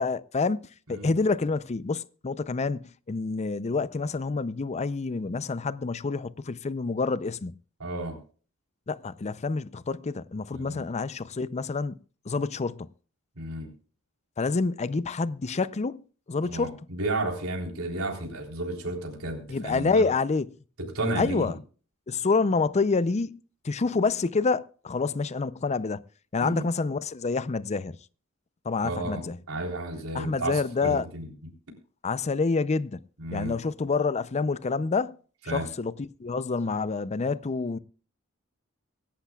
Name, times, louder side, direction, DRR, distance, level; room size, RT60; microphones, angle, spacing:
voice 1, 0.0-7.5 8.9-12.0 12.3-12.9 14.4-16.0 16.3-16.9 19.5-20.5 21.2-21.6 22.1-23.4 23.6-26.0 26.3-28.0 28.6-29.4 30.1-31.1 32.0-33.0 33.3-35.2 35.5-37.8, left 4 dB, 30° left, 0.5 m, -27 dB
voice 2, 7.8-8.2 10.5-10.8 13.4-13.7 16.4-20.1 20.8-21.5 26.4-26.7 28.8-31.3 33.2-33.6 35.5-35.7, right 2 dB, 90° right, 3.7 m, -32 dB
24.0 x 11.5 x 2.3 m
head